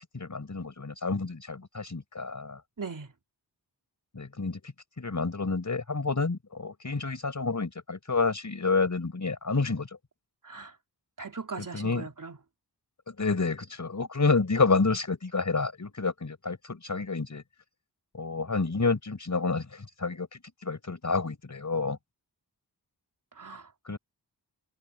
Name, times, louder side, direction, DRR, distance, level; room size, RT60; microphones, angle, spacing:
voice 1, 0.1-2.6 4.1-4.6 5.0-9.9 11.6-12.1 13.1-17.4 18.1-20.3 20.6-22.0 23.9-24.0, left 4 dB, 45° left, 4.9 m, -29 dB
voice 2, 2.8-3.1 10.4-10.7 11.2-12.4 23.4-24.0, right 4 dB, 50° right, 3.7 m, -40 dB
wide cardioid pair, 115°, 40 cm